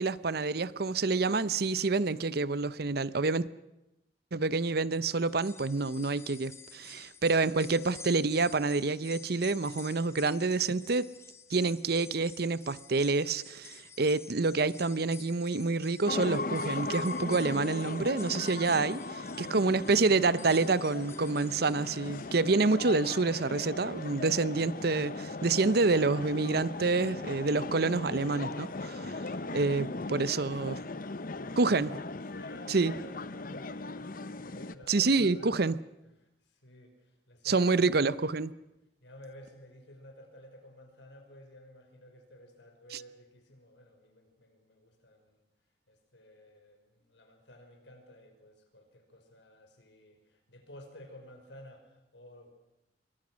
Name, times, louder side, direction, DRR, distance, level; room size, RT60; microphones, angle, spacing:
voice 1, 0.0-3.5 4.3-11.1 11.5-30.7 31.6-31.9 32.7-32.9 34.9-35.7 37.5-38.5 42.9-43.0, right 3 dB, 60° right, 0.7 m, -28 dB
sound 1, 5.1-22.4 22.8-22.9 24.0-24.1, left 5 dB, 15° left, 1.3 m, -51 dB
sound 2, 16.1-34.8, left 3 dB, 50° left, 0.9 m, -38 dB
voice 2, 19.3-19.6 30.3-30.9 31.3-35.5 36.1-37.9 39.0-45.5 45.9-52.5, left 1 dB, 75° left, 5.5 m, -53 dB
27.5 x 22.5 x 6.3 m
head